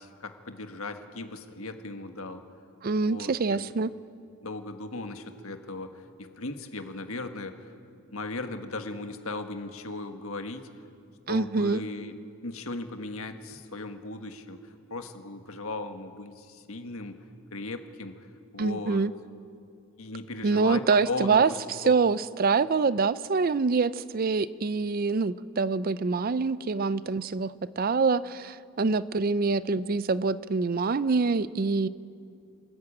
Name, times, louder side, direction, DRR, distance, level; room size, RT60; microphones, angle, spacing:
voice 1, 0.0-2.4 3.0-3.7 4.4-7.7 8.1-10.7 11.3-12.1 12.4-17.2 17.5-18.3 18.5-19.0 20.0-21.6 21.8-21.9, left 2 dB, 70° left, 7 dB, 1.5 m, -37 dB
voice 2, 2.8-3.9 11.3-11.8 18.6-19.1 20.4-21.5 21.9-31.9, right 4 dB, 40° right, 17 dB, 0.4 m, -25 dB
27.0 x 14.0 x 8.6 m, 2.5 s
head